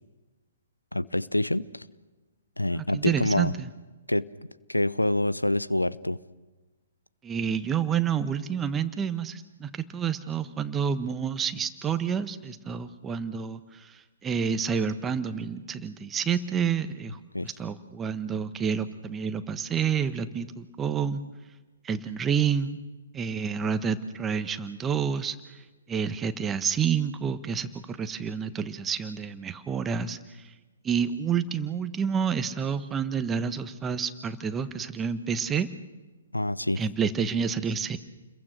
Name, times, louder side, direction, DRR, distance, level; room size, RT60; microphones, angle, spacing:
voice 1, 0.9-1.8 2.6-3.5 4.1-4.3 4.7-6.2 17.3-17.5 36.3-36.8, left 1 dB, 90° left, 17 dB, 0.8 m, -26 dB
voice 2, 2.7-3.7 7.2-21.2 21.8-22.8 23.1-25.4 25.9-30.5 30.8-35.7 36.8-38.0, right 7 dB, 15° right, 11 dB, 1.3 m, -29 dB
29.5 x 22.0 x 6.5 m, 1.2 s
figure-of-eight pair, 125°, 0 cm